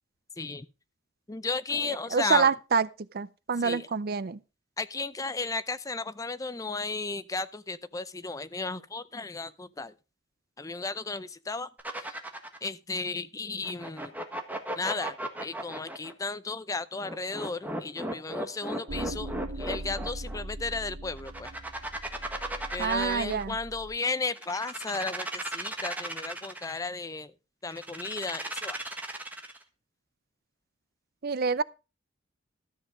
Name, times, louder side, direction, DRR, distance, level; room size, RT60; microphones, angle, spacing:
voice 1, 1.3-2.5 3.6-3.9 4.8-9.9 10.6-11.7 12.6-14.1 14.8-21.5 22.7-27.3 27.6-28.8, left 3 dB, 20° left, 0.5 m, -34 dB
voice 2, 1.8-2.9 3.1-4.4 22.8-23.6 31.2-31.6, right 5 dB, 50° right, 0.5 m, -27 dB
sound 1, 11.8-12.7 13.6-16.1 17.0-20.4 21.2-23.5 24.3-26.8 27.7-29.6, right 1 dB, 10° right, 1.4 m, -36 dB
sound 2, 18.9-24.0, right 1 dB, 75° right, 1.2 m, -40 dB
13.0 x 7.3 x 5.0 m
head